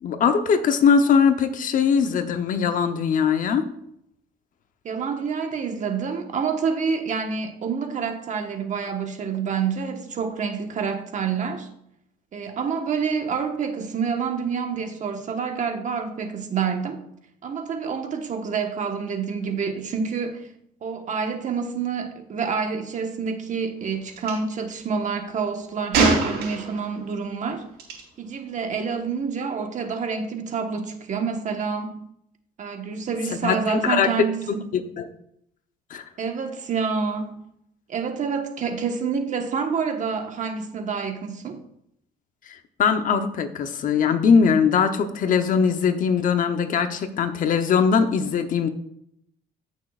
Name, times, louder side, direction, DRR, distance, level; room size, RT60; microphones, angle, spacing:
voice 1, 0.0-3.6 33.4-34.1 34.5-35.1 35.9-36.0 42.8-48.7, left 6 dB, 55° left, 0.9 m, -21 dB
voice 2, 4.8-11.7 12.3-17.0 17.4-20.5 20.8-27.6 28.2-32.0 32.6-34.6 36.2-37.4 37.9-41.6, right 5 dB, 45° right, 1.4 m, -28 dB
Gunshot gunfire, 24.2-24.4 25.9-26.9 27.8-28.0, right 3 dB, 80° right, 3.7 m, -22 dB
15.5 x 6.3 x 2.5 m
cardioid pair, 110°, 17 cm